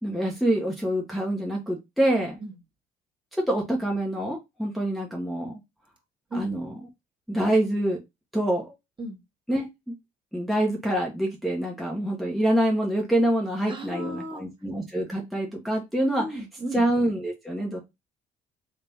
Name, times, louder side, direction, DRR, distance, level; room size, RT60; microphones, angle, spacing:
voice 1, 0.0-2.4 3.4-5.5 6.3-6.7 7.3-8.0 8.3-8.7 9.5-9.9 10.3-16.2 16.7-17.8, right 1 dB, ahead, 1.0 m, -26 dB
voice 2, 2.1-2.5 6.3-6.4 9.0-9.2 13.7-14.4 16.2-16.8, equal, 30° right, 1.5 m, -35 dB
3.5 x 3.3 x 2.7 m
cardioid pair, 110°, 17 cm